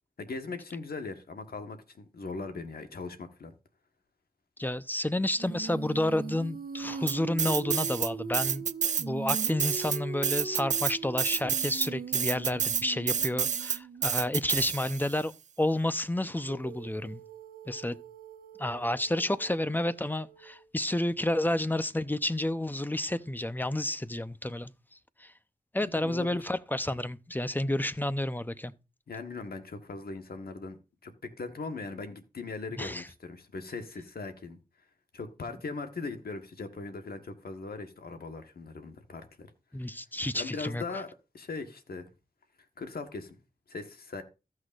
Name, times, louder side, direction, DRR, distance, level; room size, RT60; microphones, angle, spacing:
voice 1, 0.2-3.5 25.8-26.5 29.1-34.6 35.1-39.5 40.3-42.1 42.8-43.4 43.7-44.2, left 3 dB, 75° left, 1.4 m, -40 dB
voice 2, 4.6-8.7 9.0-15.3 15.6-17.2 17.7-18.0 18.6-24.7 25.2-25.3 25.7-28.7 32.8-33.0 39.7-40.8, left 1 dB, 10° left, 0.7 m, -30 dB
Female singing, 5.4-14.3 16.5-20.7, right 5 dB, 70° right, 1.3 m, -41 dB
sound 1, 7.1-8.1 8.3-15.2, right 7 dB, 50° right, 0.4 m, -29 dB
15.0 x 6.3 x 2.5 m
cardioid pair, 45°, 16 cm